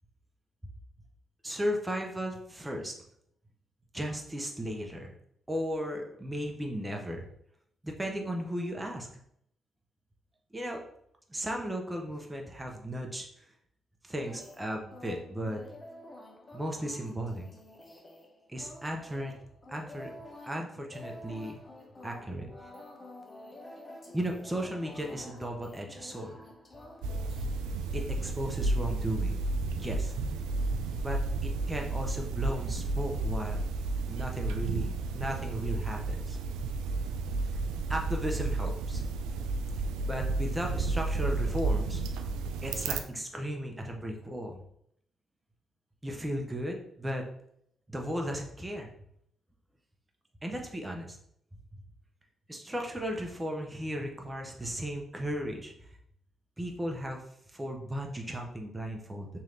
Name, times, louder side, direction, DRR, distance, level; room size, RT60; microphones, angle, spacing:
voice 1, 1.4-2.9 3.9-5.1 5.5-7.2 7.8-9.1 10.5-10.8 11.3-13.3 14.0-15.6 16.5-17.5 18.5-19.3 19.7-20.1 20.4-21.6 22.0-22.5 24.1-26.4 27.9-29.4 29.7-30.1 31.0-33.6 34.1-36.4 37.9-39.0 40.1-42.0 42.3-42.4 42.6-44.6 46.0-47.2 47.9-48.9 50.4-51.2 52.5-55.9 56.6-57.2 57.5-59.3, equal, 15° right, 1 dB, 0.8 m, -35 dB
sound 1, 14.3-27.5, left 1 dB, 30° left, 0.9 m, -49 dB
sound 2, 27.0-43.0, right 3 dB, 85° right, 0.3 m, -32 dB
3.2 x 2.8 x 3.8 m, 0.71 s
hypercardioid pair, 50°, 0 cm